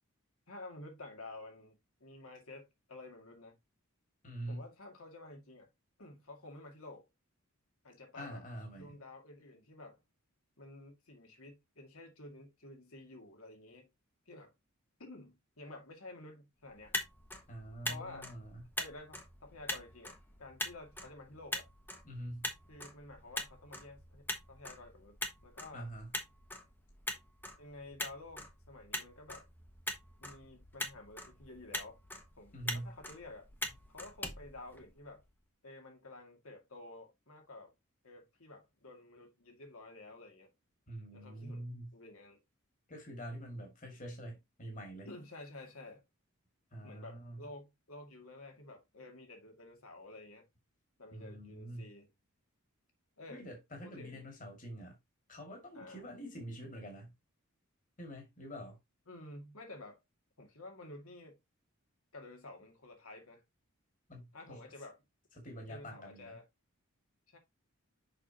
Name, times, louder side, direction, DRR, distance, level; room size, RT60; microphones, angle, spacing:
voice 1, 0.5-3.6 4.5-5.7 6.0-7.1 7.8-8.4 8.8-10.0 10.6-13.9 14.3-14.5 15.0-16.9 17.9-18.3 18.8-21.7 22.7-25.2 25.4-25.9 27.6-29.5 30.2-32.0 32.4-33.5 33.9-35.2 35.6-37.7 38.0-40.5 41.1-42.4 45.0-46.0 46.8-50.5 51.0-52.1 53.2-53.4 53.8-54.3 55.7-56.0 59.1-60.0 60.4-61.4 62.1-63.4 64.3-65.0 65.7-66.5 67.3-67.4, left 2 dB, 75° left, 2.2 m, -51 dB
voice 2, 4.2-4.7 8.1-9.0 17.5-18.6 22.0-22.5 25.7-26.1 32.5-32.9 40.9-41.9 42.9-45.1 46.7-47.5 51.1-51.9 53.3-55.0 55.3-57.1 58.0-58.8 64.1-64.6 65.4-66.4, right 1 dB, 35° left, 2.2 m, -45 dB
Motor vehicle (road), 16.7-35.3, left 1 dB, 10° left, 1.1 m, -43 dB
6.6 x 5.9 x 2.8 m
head